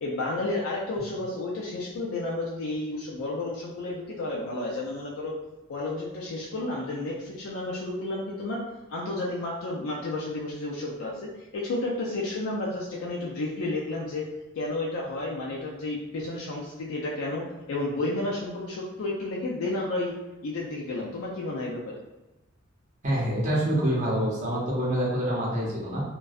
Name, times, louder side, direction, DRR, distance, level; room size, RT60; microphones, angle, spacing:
voice 1, 0.0-5.3 5.7-8.6 8.9-11.3 11.5-14.2 14.6-20.1 20.4-22.0, left 2 dB, 75° left, -4 dB, 0.4 m, -31 dB
voice 2, 23.0-26.0, right 1 dB, 35° right, -7 dB, 0.6 m, -26 dB
2.5 x 2.2 x 2.3 m, 1.0 s
head